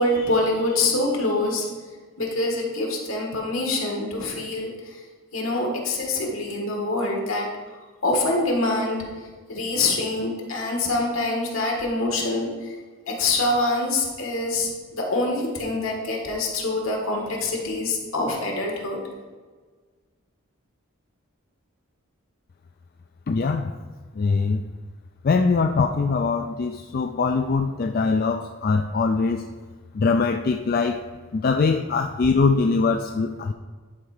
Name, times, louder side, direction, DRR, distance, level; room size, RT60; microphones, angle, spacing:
voice 1, 0.0-1.6 2.2-4.7 5.3-7.5 8.0-9.0 9.5-12.7 13.1-19.0, left 2 dB, 75° left, 0 dB, 1.8 m, -25 dB
voice 2, 23.3-23.7 24.2-24.6 25.2-29.5 29.9-31.0 31.3-33.5, left 4 dB, 45° left, 5 dB, 0.3 m, -22 dB
10.5 x 4.5 x 4.9 m, 1.4 s
head